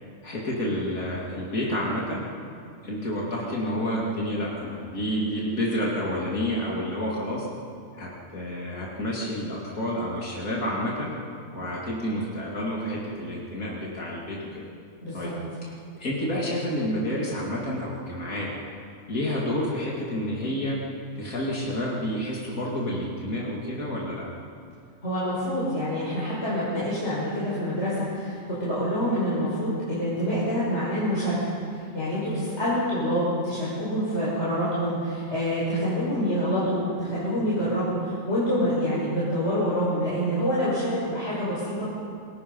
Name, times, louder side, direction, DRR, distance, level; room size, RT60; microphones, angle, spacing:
voice 1, 0.2-2.2 2.8-7.5 7.9-11.1 11.5-14.6 15.1-15.3 15.6-15.7 15.9-18.5 19.1-20.8 21.1-24.3, equal, 85° left, -4 dB, 3.3 m, -29 dB
voice 2, 15.0-15.3 25.0-31.4 31.7-41.8, equal, 50° left, -9 dB, 6.3 m, -26 dB
27.5 x 21.5 x 5.6 m, 2.4 s
omnidirectional pair, 1.4 m